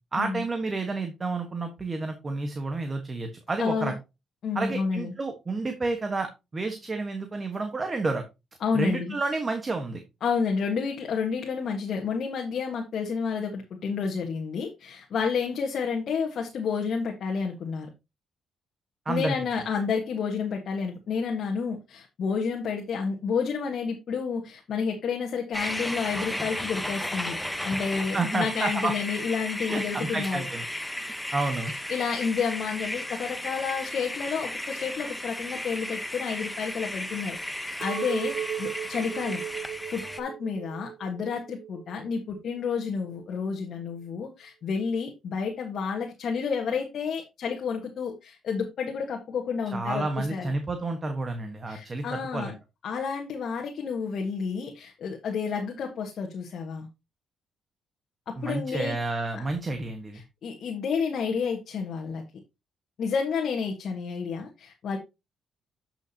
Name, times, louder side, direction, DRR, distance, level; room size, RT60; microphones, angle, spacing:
voice 1, 0.1-3.9 4.5-8.2 8.7-10.0 19.0-19.3 28.1-28.9 29.7-30.6 31.3-31.7 49.7-52.5 58.4-60.2, right 3 dB, 30° right, 6 dB, 1.4 m, -30 dB
voice 2, 3.6-3.9 4.4-5.1 8.6-9.2 10.2-17.9 19.1-27.4 27.6-30.4 31.9-39.4 39.9-50.5 51.7-52.5 52.8-56.9 58.3-59.0 60.4-62.2 63.0-65.0, left 5 dB, 60° left, 1 dB, 1.6 m, -30 dB
sound 1, 25.5-40.2, left 1 dB, 5° left, 1.0 m, -34 dB
Chink clink, 37.8-42.1 42.5-43.1, right 9 dB, 60° right, 0.5 m, -37 dB
11.0 x 6.1 x 2.9 m, 0.24 s
cardioid pair, 90°, 0 cm